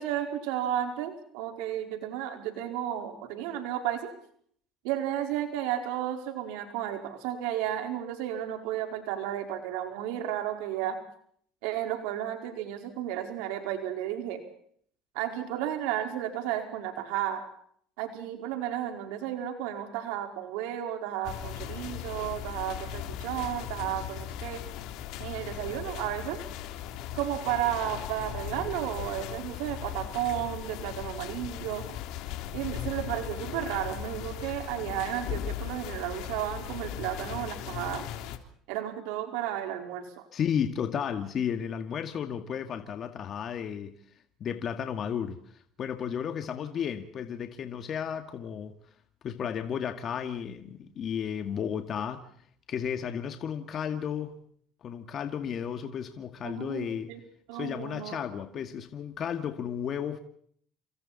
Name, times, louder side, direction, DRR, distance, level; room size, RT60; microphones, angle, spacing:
voice 1, 0.0-4.1 4.8-11.0 11.6-14.4 15.1-17.5 18.0-24.6 25.2-26.4 27.1-31.8 32.5-38.0 38.7-40.3 56.4-57.2 57.5-58.2, right 11 dB, 85° right, 4.8 m, -33 dB
sound 1, 21.2-38.4, left 11 dB, 75° left, 3.3 m, -38 dB
voice 2, 40.3-44.0 44.4-48.7 49.2-52.2 52.7-54.4 54.8-57.1 57.5-60.2, left 8 dB, 45° left, 2.1 m, -33 dB
29.0 x 26.5 x 4.3 m
cardioid pair, 120°, 0 cm